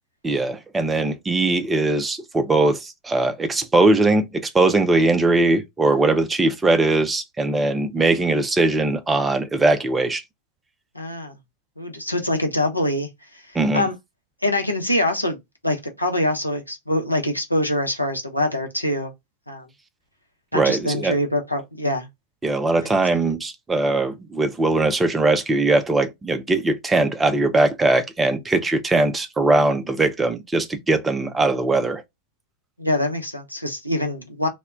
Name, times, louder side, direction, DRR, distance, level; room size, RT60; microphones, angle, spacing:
voice 1, 0.2-10.2 13.5-13.9 20.5-21.2 22.4-32.0, right 2 dB, 15° right, 0.4 m, -20 dB
voice 2, 10.9-11.3 11.8-13.9 14.4-15.4 15.6-19.1 19.5-19.7 20.5-22.1 23.1-23.2 32.8-34.5, left 1 dB, 90° left, 0.6 m, -24 dB
2.1 x 2.1 x 3.5 m
figure-of-eight pair, 90°, 0 cm